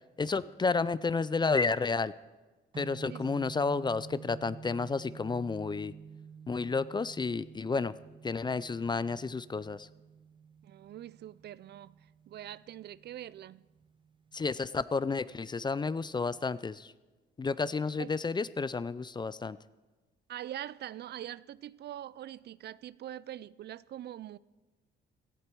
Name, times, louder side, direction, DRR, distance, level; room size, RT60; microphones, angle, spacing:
voice 1, 0.2-2.1 2.8-5.9 6.5-7.9 8.2-9.9 14.3-16.9 17.4-19.6, left 4 dB, 20° left, 0.4 m, -31 dB
sound 1, 2.7-14.8, right 6 dB, 25° right, 0.8 m, -50 dB
voice 2, 10.6-12.0 12.3-13.7 18.0-18.1 20.3-24.4, right 12 dB, 55° right, 0.4 m, -43 dB
17.5 x 13.0 x 4.6 m
cardioid pair, 90°, 20 cm